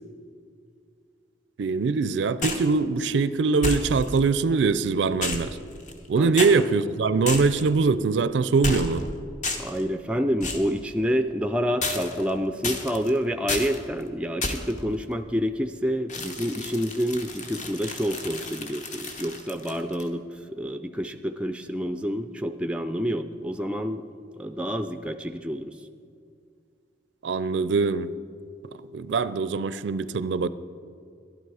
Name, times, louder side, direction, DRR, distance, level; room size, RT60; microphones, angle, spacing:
voice 1, 1.6-5.6 6.1-9.0 27.2-28.1 28.9-30.5, right 4 dB, 75° right, 15 dB, 0.4 m, -23 dB
sound 1, 2.4-2.7 3.6-4.2 5.2-6.1 6.4-6.5 7.3-7.7 8.6-9.1 9.4-9.8 10.4-10.7 11.8-12.3 12.6-13.1 13.5-13.8 14.4-14.8 16.1-20.1, left 2 dB, 40° left, 1.0 m, -31 dB
voice 2, 9.6-20.2 20.5-24.0 24.4-25.7, equal, 5° right, 8 dB, 0.4 m, -28 dB
12.0 x 11.5 x 4.8 m, 2.3 s
head